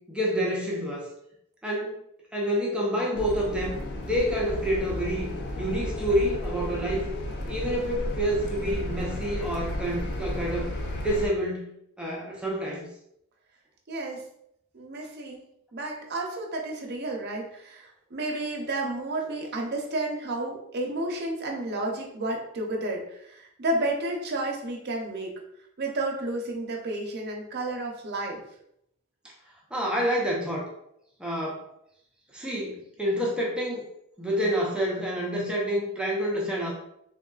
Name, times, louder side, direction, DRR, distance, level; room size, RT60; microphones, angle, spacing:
voice 1, 0.1-1.1 1.6-1.9 2.3-7.1 7.5-10.7 11.0-11.7 12.0-12.9 29.7-30.7 31.2-31.6 32.3-33.8 34.2-36.7, equal, 5° right, -3 dB, 0.4 m, -28 dB
sound 1, 3.1-11.3, left 1 dB, 50° left, 0.4 m, -33 dB
voice 2, 13.9-14.2 14.7-25.3 25.8-28.4, right 2 dB, 50° right, 0 dB, 0.6 m, -31 dB
3.4 x 2.3 x 2.3 m, 0.76 s
head